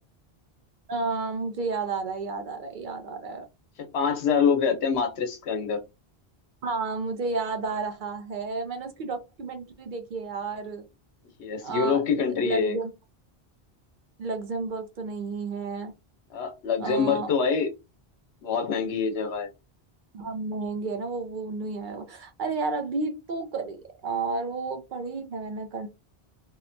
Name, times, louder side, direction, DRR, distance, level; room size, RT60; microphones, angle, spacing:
voice 1, 0.9-3.5 6.6-10.8 11.6-12.9 14.2-15.9 16.8-17.3 20.1-25.9, right 4 dB, 60° right, 0.6 m, -32 dB
voice 2, 3.8-5.8 11.4-12.8 16.3-17.7 18.4-19.5, left 6 dB, 85° left, 1.0 m, -25 dB
2.8 x 2.1 x 2.5 m
omnidirectional pair, 1.1 m